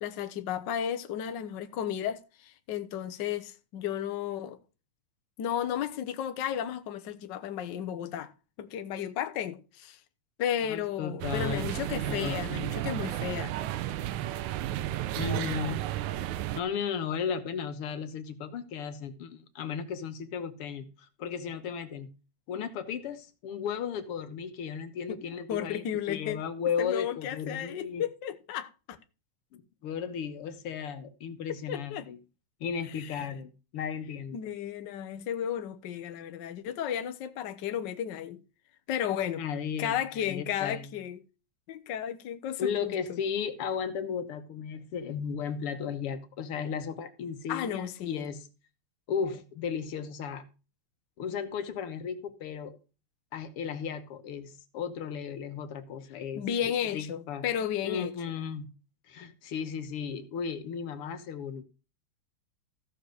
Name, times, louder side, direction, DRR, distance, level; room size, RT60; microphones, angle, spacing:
voice 1, 0.0-4.6 5.4-8.3 8.6-10.0 10.4-13.5 25.1-25.2 25.5-26.4 26.8-29.0 31.7-32.1 32.9-33.3 34.3-38.4 38.9-39.4 39.8-41.2 41.7-43.2 47.5-48.3 56.3-58.1, left 9 dB, 85° left, 1.0 m, -33 dB
voice 2, 10.6-12.5 15.2-15.8 16.6-22.1 22.5-28.0 29.5-32.2 32.6-34.4 39.4-40.9 42.6-48.5 49.1-50.4 51.2-52.8 53.3-56.5 56.9-57.5 57.8-58.7 59.1-61.6, left 7 dB, 60° left, 1.8 m, -35 dB
sound 1, 11.2-16.6, right 13 dB, 85° right, 2.1 m, -33 dB
14.5 x 4.9 x 6.5 m
omnidirectional pair, 3.3 m